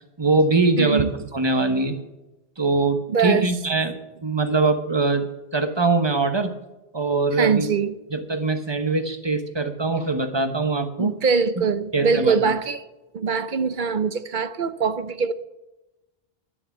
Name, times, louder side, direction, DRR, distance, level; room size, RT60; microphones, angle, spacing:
voice 1, 0.2-1.0 1.3-2.0 2.6-6.6 6.9-7.7 8.1-11.1 11.9-12.5, right 3 dB, 25° right, 1.2 m, -22 dB
voice 2, 0.8-1.1 3.1-3.5 7.4-7.9 11.0-12.8 13.1-15.3, right 5 dB, 55° right, 0.9 m, -22 dB
11.0 x 11.0 x 7.2 m
omnidirectional pair, 1.0 m